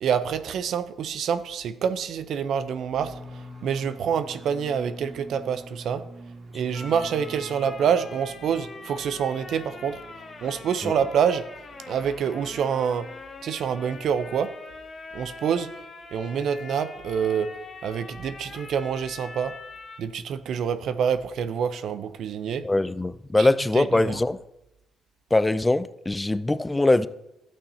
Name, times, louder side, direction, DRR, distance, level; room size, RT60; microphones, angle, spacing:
voice 1, 0.0-3.2 3.6-6.0 6.5-10.0 10.4-11.5 11.9-13.1 13.4-14.5 15.1-15.7 16.1-17.5 17.8-19.5 20.0-22.7 23.4-23.5 23.7-24.2, right 7 dB, 70° right, 11 dB, 0.5 m, -26 dB
sound 1, 3.0-12.5, right 1 dB, 50° right, 1.5 m, -45 dB
sound 2, 6.7-20.0, left 3 dB, 40° left, 1.4 m, -43 dB
voice 2, 22.6-24.4 25.3-27.1, left 2 dB, 15° left, 15 dB, 0.4 m, -22 dB
13.0 x 8.5 x 2.8 m, 0.90 s
cardioid pair, 90°, 0 cm